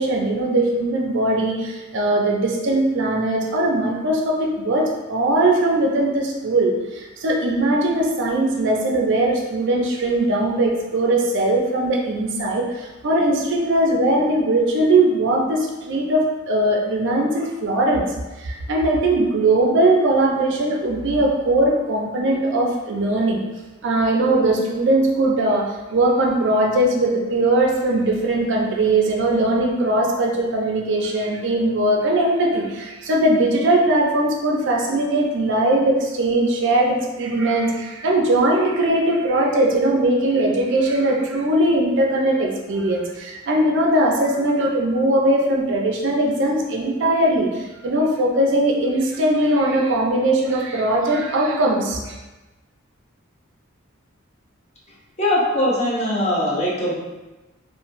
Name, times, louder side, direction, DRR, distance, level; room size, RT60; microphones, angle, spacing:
voice 1, 0.0-23.4 23.8-52.2, right 1 dB, 60° right, 0 dB, 0.4 m, -20 dB
voice 2, 55.2-56.9, left 1 dB, 35° left, -5 dB, 0.6 m, -21 dB
2.9 x 2.1 x 2.5 m, 1.1 s
head